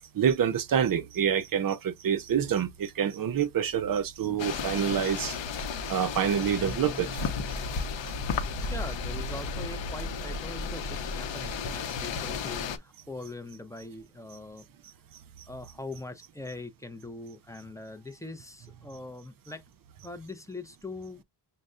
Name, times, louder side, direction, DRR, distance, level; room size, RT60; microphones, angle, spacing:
voice 1, 0.1-5.4 5.9-7.2, right 8 dB, 45° right, 0.5 m, -27 dB
sound 1, 4.4-12.8, left 5 dB, 65° left, 0.7 m, -33 dB
sound 2, 6.6-8.4, right 3 dB, 25° right, 2.1 m, -48 dB
voice 2, 8.7-14.7 15.5-19.6 20.0-21.2, left 2 dB, 5° left, 0.4 m, -42 dB
6.3 x 2.1 x 2.4 m
wide cardioid pair, 125°, 49 cm